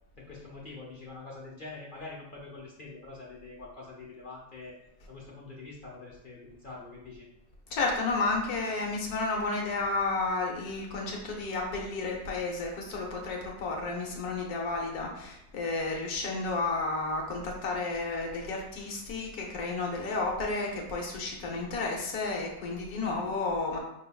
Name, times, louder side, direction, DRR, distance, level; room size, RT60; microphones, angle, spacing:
voice 1, 0.2-4.7 5.1-7.3, left 3 dB, 45° left, -4 dB, 0.7 m, -45 dB
voice 2, 7.7-23.8, left 3 dB, 70° left, 0 dB, 1.3 m, -32 dB
5.2 x 3.6 x 2.2 m, 0.83 s
omnidirectional pair, 1.7 m